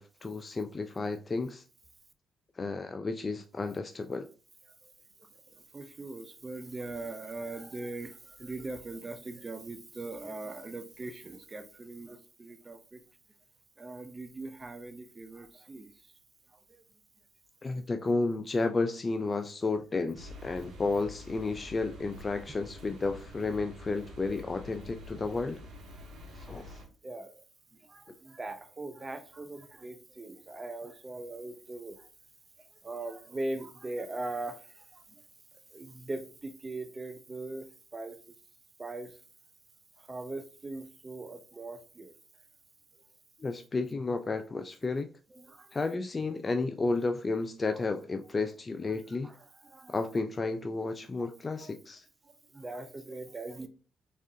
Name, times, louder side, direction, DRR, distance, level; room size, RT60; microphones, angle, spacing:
voice 1, 0.0-1.6 2.6-4.3 17.6-25.6 26.3-26.8 43.4-45.1 45.7-49.3 49.9-52.1, left 3 dB, 35° left, 0.4 m, -32 dB
voice 2, 5.7-13.0 13.8-15.9 16.7-16.8 27.0-27.3 27.9-32.1 32.8-35.0 35.7-37.7 37.9-38.2 38.8-39.1 40.1-42.1 45.3-45.7 49.2-49.4 49.6-49.9 51.2-51.3 51.6-51.7 52.5-53.7, right 2 dB, 30° right, 0.6 m, -40 dB
sound 1, 20.1-26.9, left 1 dB, 70° right, 1.3 m, -47 dB
4.1 x 3.5 x 2.6 m
supercardioid pair, 55°, 0 cm